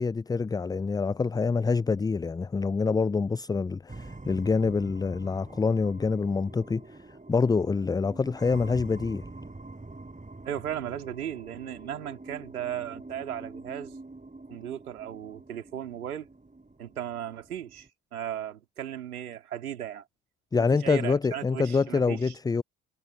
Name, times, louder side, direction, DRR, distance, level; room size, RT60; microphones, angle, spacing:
voice 1, 0.0-7.0 7.3-9.2 20.5-22.6, left 4 dB, 10° left, 0.4 m, -26 dB
sound 1, 3.9-17.9, right 2 dB, 15° right, 6.8 m, -45 dB
voice 2, 10.4-14.0 14.5-16.3 16.8-20.1 20.8-22.4, right 10 dB, 80° right, 4.0 m, -36 dB
figure-of-eight pair, 45°, 43 cm